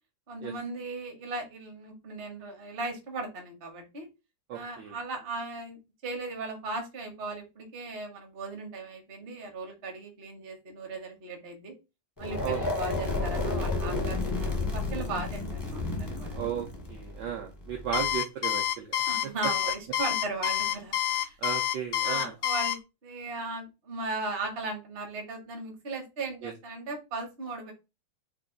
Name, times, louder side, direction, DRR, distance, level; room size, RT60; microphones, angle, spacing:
voice 1, 0.3-4.1 4.5-5.8 6.0-11.7 12.2-16.4 19.0-21.4 22.0-27.7, right 3 dB, 45° right, 3 dB, 0.8 m, -37 dB
voice 2, 4.5-5.0 12.4-12.7 16.3-18.9 21.1-22.3 26.4-26.5, right 9 dB, 75° right, 2 dB, 1.0 m, -35 dB
sound 1, 12.2-18.1, left 3 dB, 25° left, 0.4 m, -31 dB
Alarm, 17.9-22.8, left 12 dB, 80° left, 0.9 m, -28 dB
3.4 x 2.3 x 3.7 m, 0.27 s
omnidirectional pair, 2.3 m